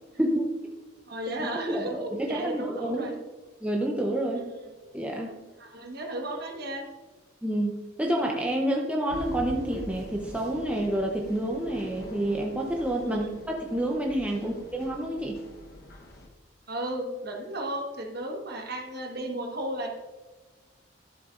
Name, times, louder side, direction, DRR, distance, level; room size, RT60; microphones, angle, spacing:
voice 1, 0.2-0.6 1.4-3.1 3.6-4.4 4.9-5.4 7.4-15.4, right 1 dB, 5° right, -1 dB, 0.7 m, -29 dB
voice 2, 1.0-3.2 4.3-4.4 5.6-6.9 13.0-13.3 14.3-14.5 16.7-19.9, right 1 dB, 50° right, 1 dB, 1.4 m, -34 dB
sound 1, 9.1-16.3, left 1 dB, 50° left, 1.0 m, -44 dB
12.5 x 7.7 x 2.5 m, 1.3 s
head